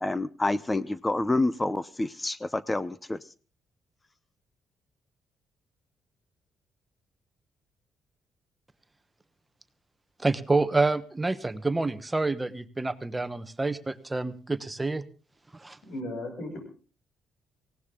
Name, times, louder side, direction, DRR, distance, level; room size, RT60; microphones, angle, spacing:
voice 1, 0.0-3.2, left 2 dB, 15° left, 17 dB, 0.7 m, -28 dB
voice 2, 10.2-15.0 15.5-15.8, right 3 dB, 15° right, 13 dB, 1.2 m, -28 dB
voice 3, 15.8-16.6, left 1 dB, 75° left, 5 dB, 6.3 m, -36 dB
19.0 x 16.5 x 3.8 m, 0.36 s
cardioid pair, 90°, 0 cm